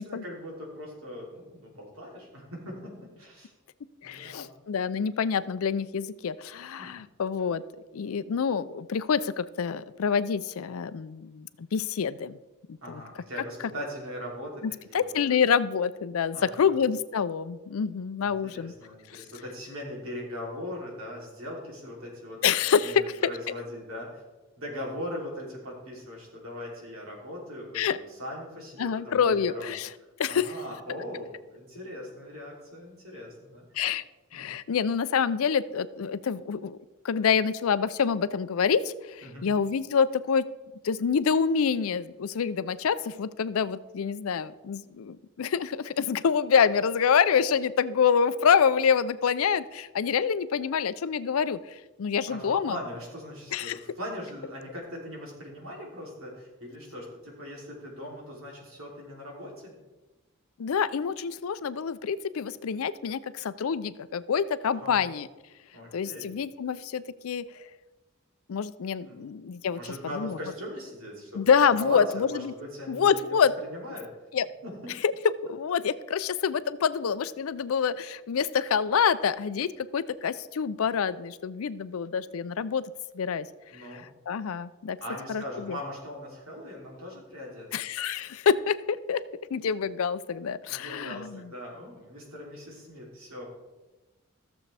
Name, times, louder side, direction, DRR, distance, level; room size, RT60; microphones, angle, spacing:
voice 1, 0.0-3.5 4.0-4.5 6.8-7.0 12.8-15.2 16.3-16.8 18.2-22.4 22.8-24.2 24.6-29.7 30.3-33.6 34.3-34.5 39.2-39.5 52.3-59.8 64.8-65.0 65.7-66.3 69.0-69.2 69.7-74.1 74.6-74.9 83.7-84.0 85.0-87.7 90.7-93.5, equal, 75° right, -2 dB, 3.1 m, -40 dB
voice 2, 4.0-7.6 7.9-12.4 12.7-13.0 14.9-18.7 19.1-19.2 22.4-23.3 27.7-28.0 28.8-29.9 30.2-30.5 33.8-34.0 34.3-36.8 37.0-40.5 40.8-51.6 52.0-52.8 53.5-53.8 60.6-65.3 65.9-67.4 68.5-69.8 70.2-70.4 71.3-72.5 72.9-73.5 74.3-74.5 75.0-75.1 75.5-82.8 83.1-83.5 84.3-85.0 85.3-85.8 87.7-89.2 89.5-91.5, left 6 dB, 75° left, 15 dB, 0.4 m, -26 dB
15.0 x 7.1 x 3.4 m, 1.1 s
head